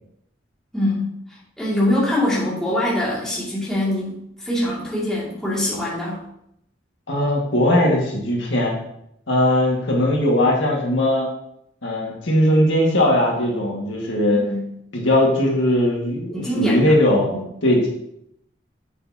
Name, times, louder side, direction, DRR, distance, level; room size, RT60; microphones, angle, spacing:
voice 1, 0.7-1.1 1.6-6.2 14.3-14.7 16.3-17.0 17.3-17.4, left 1 dB, 5° left, -8 dB, 2.3 m, -23 dB
voice 2, 7.1-8.7 9.3-11.3 11.8-14.5 14.9-17.3 17.6-17.9, left 1 dB, 90° left, -2 dB, 1.8 m, -19 dB
7.1 x 6.9 x 2.8 m, 0.77 s
head